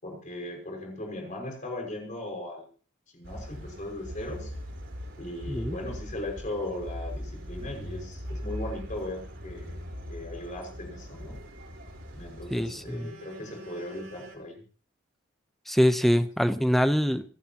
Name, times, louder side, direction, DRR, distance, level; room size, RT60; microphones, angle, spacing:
voice 1, 0.0-2.7 3.1-4.5 5.2-9.8 10.1-11.4 12.1-14.6, left 1 dB, 40° left, 1 dB, 5.9 m, -38 dB
sound 1, 3.2-14.3, equal, 70° right, 4.5 m, -40 dB
voice 2, 12.5-13.1 15.7-17.2, equal, ahead, 10 dB, 0.8 m, -24 dB
27.0 x 12.5 x 3.0 m, 0.42 s
head